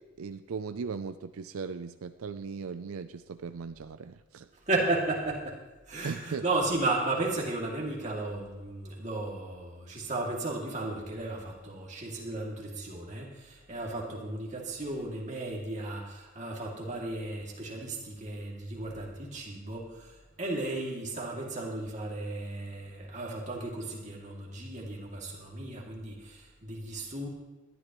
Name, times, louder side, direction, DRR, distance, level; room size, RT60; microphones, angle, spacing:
voice 1, 0.2-4.5 6.0-6.4, right 5 dB, 90° right, 10 dB, 0.5 m, -38 dB
voice 2, 4.7-5.6 5.9-27.3, right 2 dB, 35° right, -2 dB, 2.5 m, -34 dB
20.0 x 12.0 x 3.1 m, 1.2 s
head